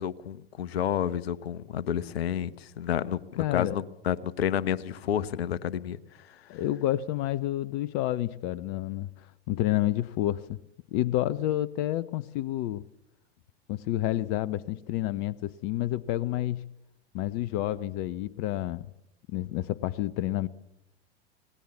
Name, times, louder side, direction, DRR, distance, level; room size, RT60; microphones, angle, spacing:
voice 1, 0.0-6.0 6.3-6.4, left 10 dB, 70° left, 18 dB, 1.2 m, -30 dB
voice 2, 3.4-3.8 6.5-10.6 10.9-12.8 13.7-16.7 17.1-18.9 19.3-20.5, left 14 dB, 50° left, 18 dB, 0.9 m, -29 dB
26.5 x 19.5 x 7.2 m, 0.80 s
figure-of-eight pair, 85°, 32 cm